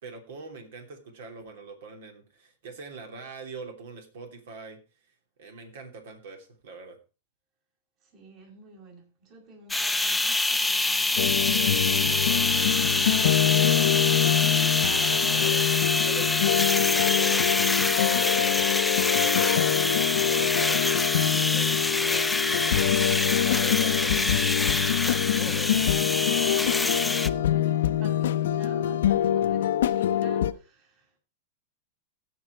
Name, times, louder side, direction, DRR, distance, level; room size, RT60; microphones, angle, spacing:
voice 1, 0.0-4.8 5.4-7.0 14.8-18.6 19.0-21.0 21.3-24.5 25.4-25.7, right 4 dB, 70° right, 3.1 m, -43 dB
voice 2, 8.0-14.0 23.4-24.4 26.2-31.2, right 3 dB, 45° right, 7.1 m, -50 dB
sound 1, 9.7-27.3, left 2 dB, 5° left, 0.7 m, -26 dB
sound 2, 11.2-30.5, left 10 dB, 75° left, 0.7 m, -25 dB
16.0 x 6.3 x 4.4 m
hypercardioid pair, 115°, 0 cm